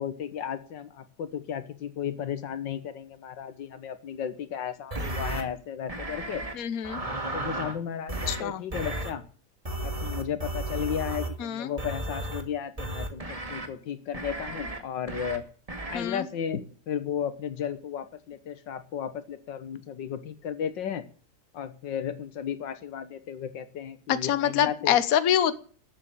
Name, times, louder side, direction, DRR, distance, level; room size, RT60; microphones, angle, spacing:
voice 1, 0.0-6.4 7.3-9.2 9.8-15.4 15.9-21.0 21.5-25.0, left 8 dB, 90° left, 11 dB, 1.9 m, -34 dB
sound 1, 4.9-5.4 5.9-6.5 6.8-7.8 8.1-8.4 8.7-9.1 9.7-11.4 11.8-12.4 12.8-13.7 14.1-14.8 15.1-15.4 15.7-16.0, right 1 dB, 20° right, 2.2 m, -33 dB
voice 2, 6.6-7.0 8.3-8.6 11.4-11.7 15.9-16.3 24.1-25.5, left 10 dB, 55° left, 13 dB, 1.4 m, -25 dB
13.5 x 8.6 x 8.9 m, 0.42 s
omnidirectional pair, 1.9 m